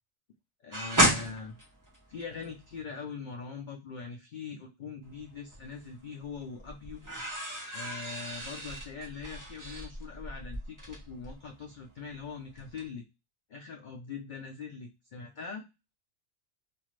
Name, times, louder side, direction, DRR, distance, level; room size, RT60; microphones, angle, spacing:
voice 1, 0.6-1.6 2.1-7.0 7.7-13.1 13.5-15.6, left 5 dB, 80° left, 2 dB, 0.4 m, -42 dB
sound 1, 0.7-2.8 5.0-5.9 6.2-12.3 12.5-12.8, right 1 dB, 20° right, 0.7 m, -32 dB
2.5 x 2.4 x 3.0 m, 0.25 s
omnidirectional pair, 1.4 m